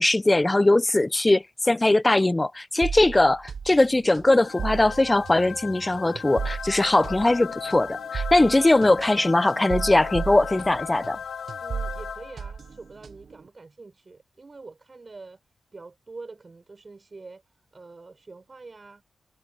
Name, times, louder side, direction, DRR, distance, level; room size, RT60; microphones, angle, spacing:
voice 1, 0.0-11.2, left 2 dB, 25° left, 0.7 m, -20 dB
sound 1, 2.8-11.2 11.5-13.4, right 6 dB, 70° right, 1.1 m, -35 dB
sound 2, 4.4-12.7, left 7 dB, 80° left, 1.9 m, -37 dB
voice 2, 11.6-15.4 15.7-17.4 17.7-19.0, right 3 dB, 45° right, 5.3 m, -45 dB
cardioid pair, 45°, 0 cm